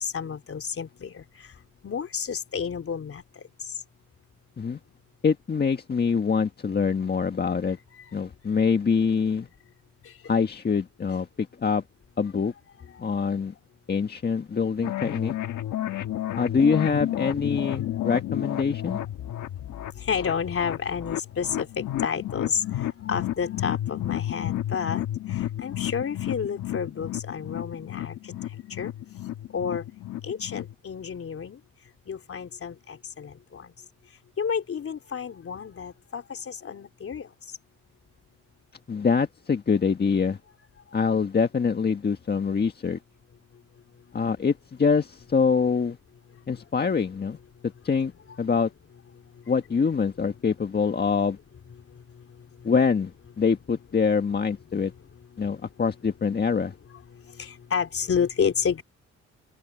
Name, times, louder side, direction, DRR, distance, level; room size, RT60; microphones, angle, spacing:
voice 1, 0.0-1.2 1.8-3.2 20.1-22.6 23.1-25.0 25.6-28.1 28.8-28.9 29.5-29.8 30.2-31.6 32.1-33.6 34.4-37.3 57.4-58.8, left 7 dB, 50° left, 3.6 m, -30 dB
voice 2, 5.2-7.8 8.1-9.5 10.3-11.8 12.2-12.5 13.0-13.5 13.9-15.3 16.4-19.0 38.9-40.4 40.9-43.0 44.1-46.0 46.5-47.4 47.8-48.1 48.4-48.7 49.5-51.4 52.6-54.9 55.4-56.7, left 5 dB, 35° left, 1.6 m, -24 dB
sound 1, 14.8-30.7, left 13 dB, 75° left, 1.7 m, -32 dB
open air
cardioid pair, 90°, 30 cm